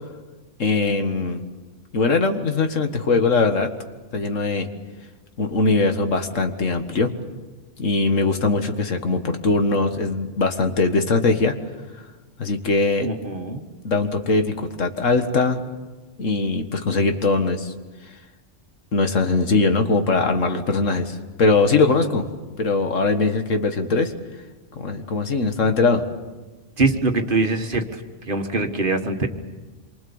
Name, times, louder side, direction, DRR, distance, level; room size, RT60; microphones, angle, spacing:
voice 1, 0.6-1.4 1.9-3.7 4.1-4.7 5.4-7.1 7.8-11.6 12.4-13.1 13.8-15.6 16.2-17.7 18.9-22.3 22.6-24.1 24.8-26.0, left 3 dB, 85° left, 6 dB, 2.0 m, -21 dB
voice 2, 13.0-13.6 26.8-29.3, right 3 dB, 45° right, 5 dB, 1.8 m, -23 dB
27.0 x 24.0 x 7.2 m, 1.2 s
omnidirectional pair, 1.3 m